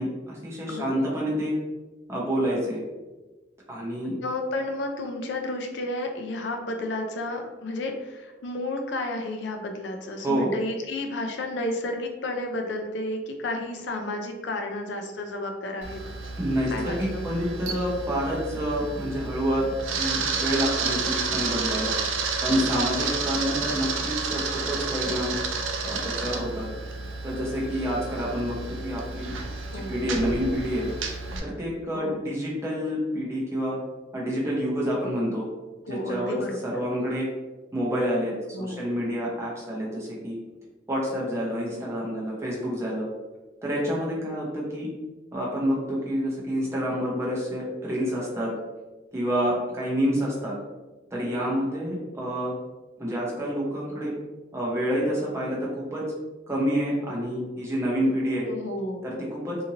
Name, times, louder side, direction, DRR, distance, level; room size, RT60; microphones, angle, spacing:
voice 1, 0.0-1.5 2.1-2.8 3.7-4.2 10.2-10.5 16.4-22.0 22.4-25.4 25.8-26.6 27.2-29.3 29.7-30.9 31.4-33.8 34.1-35.5 35.9-37.3 37.7-40.4 40.9-43.1 43.6-44.9 45.3-48.5 49.1-50.5 51.1-52.5 53.0-54.1 54.5-56.0 56.5-58.5 59.0-59.6, equal, 15° right, -5 dB, 0.7 m, -28 dB
voice 2, 0.7-1.0 4.2-16.0 16.7-17.2 29.7-30.0 31.9-32.2 35.9-36.6 38.5-38.9 58.5-59.1, left 2 dB, 65° left, 4 dB, 0.4 m, -32 dB
Camera, 15.8-31.4, right 4 dB, 85° right, 0.4 m, -31 dB
2.8 x 2.5 x 2.7 m, 1.2 s
head